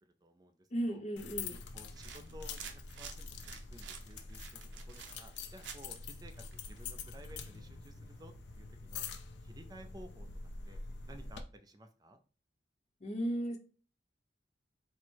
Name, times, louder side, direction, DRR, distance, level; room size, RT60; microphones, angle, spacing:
voice 1, 0.2-1.0 1.7-4.6 4.9-9.1 9.4-10.3 10.7-10.8 11.1-12.2, right 1 dB, 20° right, 0.4 m, -55 dB
voice 2, 0.7-1.6 13.0-13.6, right 1 dB, 40° left, 0.7 m, -35 dB
sound 1, 1.2-11.4, left 4 dB, 75° left, 0.5 m, -46 dB
sound 2, 1.8-8.9, right 6 dB, 85° right, 0.6 m, -52 dB
4.4 x 2.0 x 4.4 m
head